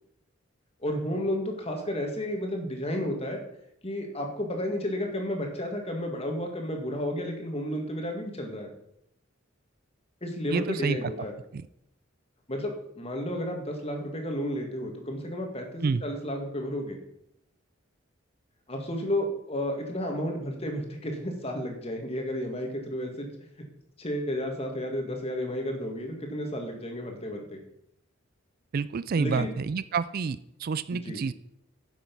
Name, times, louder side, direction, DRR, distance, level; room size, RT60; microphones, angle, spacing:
voice 1, 0.8-3.4 3.8-8.7 10.2-11.3 12.5-17.0 18.7-23.3 24.0-27.6 29.2-29.5 30.9-31.2, equal, 30° left, 2 dB, 2.1 m, -32 dB
voice 2, 10.5-11.0 11.5-11.7 15.8-16.0 28.7-31.3, right 5 dB, 45° right, 16 dB, 0.3 m, -29 dB
10.5 x 7.2 x 5.4 m, 0.79 s
head